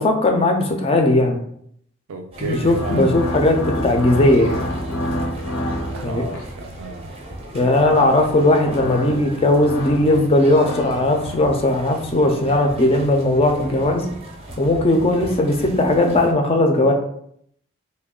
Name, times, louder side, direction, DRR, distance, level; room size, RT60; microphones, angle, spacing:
voice 1, 0.0-1.4 2.4-4.6 6.0-6.2 7.5-14.1 14.6-16.9, left 1 dB, 25° left, 3 dB, 0.4 m, -18 dB
voice 2, 2.1-3.1 5.9-7.1 7.9-8.1, right 2 dB, 85° right, 3 dB, 0.4 m, -32 dB
sound 1, 2.3-16.3, right 1 dB, 30° right, 0.5 m, -37 dB
sound 2, 2.5-6.6 7.5-11.5, left 1 dB, 80° left, 0.5 m, -29 dB
3.1 x 2.2 x 3.6 m, 0.68 s
head